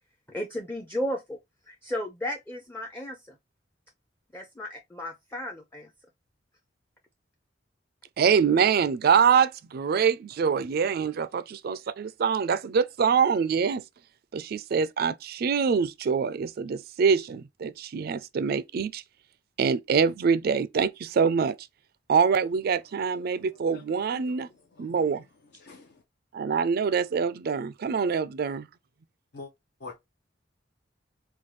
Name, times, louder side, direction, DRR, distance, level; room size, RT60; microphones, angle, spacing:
voice 1, 0.3-1.4 1.7-3.2 4.3-5.9, left 1 dB, 10° left, 0.5 m, -34 dB
voice 2, 8.2-13.8 14.3-19.0 19.6-21.6 22.1-24.5 24.8-25.2 26.3-28.7, right 6 dB, 55° right, 0.4 m, -25 dB
voice 3, 23.1-23.4 23.7-25.1 25.5-26.0 29.3-29.5 29.8-30.0, left 3 dB, 60° left, 0.6 m, -47 dB
4.4 x 2.3 x 3.1 m
head